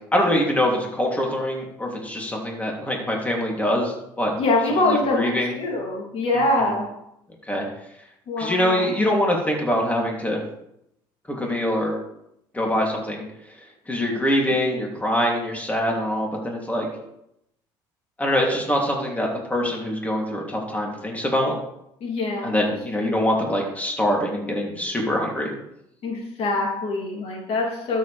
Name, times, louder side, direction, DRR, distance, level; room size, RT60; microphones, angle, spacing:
voice 1, 0.1-4.3 4.9-5.5 6.3-6.7 7.5-7.7 8.4-10.4 11.3-12.0 12.5-13.6 13.9-16.9 18.2-21.5 22.4-25.5, left 1 dB, 10° left, -1 dB, 3.1 m, -24 dB
voice 2, 4.3-6.9 8.3-8.9 22.0-22.5 23.0-23.2 26.0-28.0, left 2 dB, 55° left, -1 dB, 3.1 m, -24 dB
12.5 x 7.7 x 3.5 m, 0.80 s
supercardioid pair, 75°, 12 cm